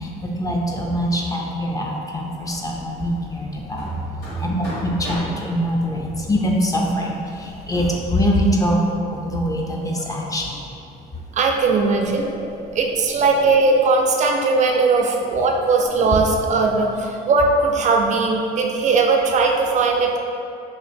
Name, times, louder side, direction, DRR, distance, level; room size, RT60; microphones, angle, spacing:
voice 1, 0.0-3.9 4.4-10.7, equal, 20° left, -1 dB, 0.4 m, -23 dB
Hammer, 2.4-9.3, equal, 85° left, 1.5 m, -39 dB
sound 1, 11.3-13.8 15.6-17.2, left 1 dB, 70° left, 1.0 m, -37 dB
voice 2, 11.3-12.3 12.7-20.2, right 3 dB, 45° right, 2 dB, 0.4 m, -19 dB
2.9 x 2.5 x 4.1 m, 2.6 s
cardioid pair, 110°, 17 cm